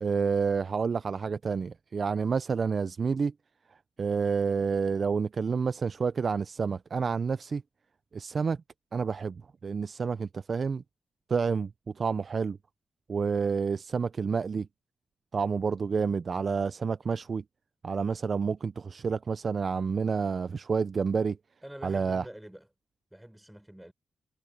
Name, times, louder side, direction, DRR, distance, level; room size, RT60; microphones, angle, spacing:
voice 1, 0.0-3.3 4.0-7.6 8.1-8.6 8.9-9.4 9.6-10.8 11.3-11.7 12.0-12.6 13.1-14.7 15.3-17.4 17.8-21.4 21.8-22.2, right 5 dB, 40° right, 0.3 m, -29 dB
voice 2, 21.6-22.7 23.1-23.9, right 1 dB, 5° right, 4.2 m, -46 dB
wide cardioid pair, 155°, 0 cm